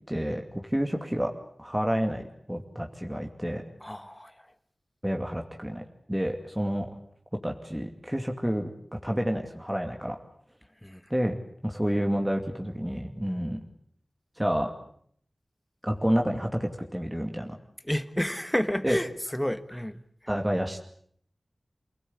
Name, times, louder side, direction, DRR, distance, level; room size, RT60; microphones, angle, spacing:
voice 1, 0.0-1.3 1.6-3.6 5.0-5.8 6.1-6.9 7.3-8.7 9.0-10.2 11.1-13.6 14.4-14.7 15.8-17.6 18.8-19.0 20.3-20.8, equal, 10° right, 2.5 m, -29 dB
voice 2, 3.8-4.5 10.8-11.1 17.8-20.0, equal, 10° left, 1.6 m, -30 dB
28.0 x 18.0 x 8.7 m
wide cardioid pair, 65°, 0 cm